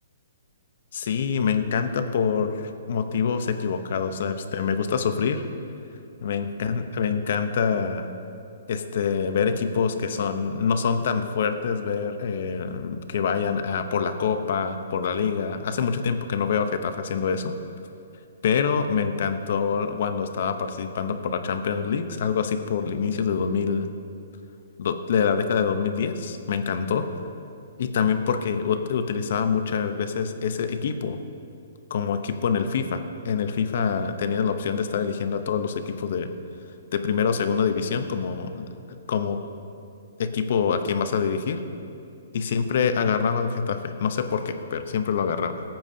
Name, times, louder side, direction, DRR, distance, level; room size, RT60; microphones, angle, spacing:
voice 1, 0.9-5.5 6.2-8.1 8.7-17.5 18.4-23.9 24.8-27.0 27.8-31.2 31.9-36.3 36.9-38.7 39.1-39.4 40.2-41.6 42.3-45.6, left 6 dB, 50° left, 8 dB, 0.8 m, -25 dB
22.0 x 9.0 x 2.8 m, 2.6 s
hypercardioid pair, 170°, 0 cm